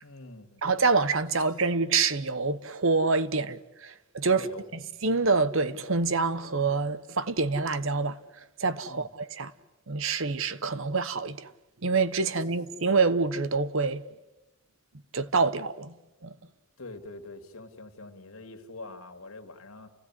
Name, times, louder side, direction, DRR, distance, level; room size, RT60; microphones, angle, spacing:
voice 1, 0.0-0.6 4.2-4.7 8.9-9.1 16.8-19.9, left 2 dB, 75° left, 2.5 m, -44 dB
voice 2, 0.6-4.4 5.0-8.2 8.6-9.5 9.9-11.5 11.8-14.0 15.1-15.9 16.2-16.3, right 4 dB, 65° right, 1.1 m, -26 dB
30.0 x 16.0 x 9.9 m
head